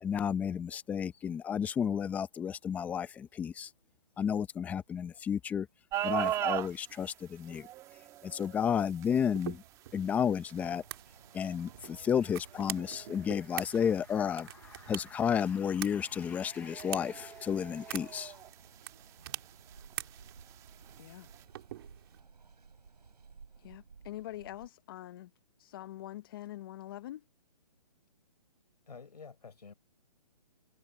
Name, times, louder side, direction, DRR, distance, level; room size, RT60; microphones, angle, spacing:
voice 1, 0.0-3.7 4.2-5.7 6.0-7.7 8.2-9.6 9.9-10.8 11.3-18.4, left 8 dB, 5° left, 0.7 m, -32 dB
sound 1, 5.9-21.5, right 13 dB, 15° right, 1.6 m, -42 dB
sound 2, 9.4-22.2, right 13 dB, 40° right, 4.1 m, -46 dB
Mechanical fan, 10.6-24.7, right 5 dB, 80° right, 7.4 m, -57 dB
voice 2, 23.6-25.3 25.6-27.2, left 14 dB, 35° left, 0.9 m, -44 dB
voice 3, 28.9-29.7, left 5 dB, 85° left, 6.7 m, -49 dB
hypercardioid pair, 155°, 20 cm